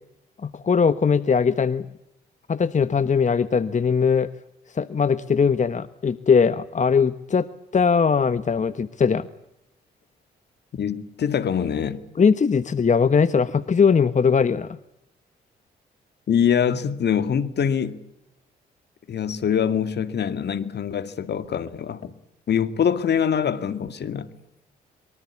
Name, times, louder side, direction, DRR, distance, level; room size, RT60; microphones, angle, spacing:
voice 1, 0.4-1.8 2.5-4.3 4.7-7.5 7.7-9.3 12.2-14.8, left 6 dB, 40° left, 1.2 m, -20 dB
voice 2, 10.7-12.0 16.3-18.0 19.1-22.1 22.5-24.3, left 8 dB, 60° left, 2.2 m, -24 dB
25.0 x 23.5 x 8.5 m
hypercardioid pair, 50°, 20 cm